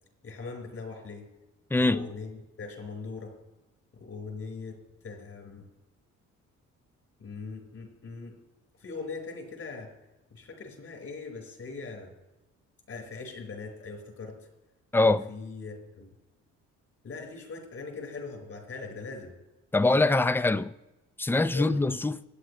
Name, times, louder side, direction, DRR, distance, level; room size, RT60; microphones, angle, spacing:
voice 1, 0.2-1.2 1.7-3.3 4.0-4.8 5.0-5.7 7.2-8.3 8.8-9.9 10.3-12.1 12.9-14.4 15.3-16.1 17.0-19.3 21.5-21.8, left 4 dB, 50° left, 5.1 m, -40 dB
voice 2, 1.7-2.1 14.9-15.3 19.7-20.7 21.2-22.2, left 2 dB, 5° left, 0.5 m, -23 dB
26.0 x 9.1 x 3.3 m
cardioid pair, 90°, 30 cm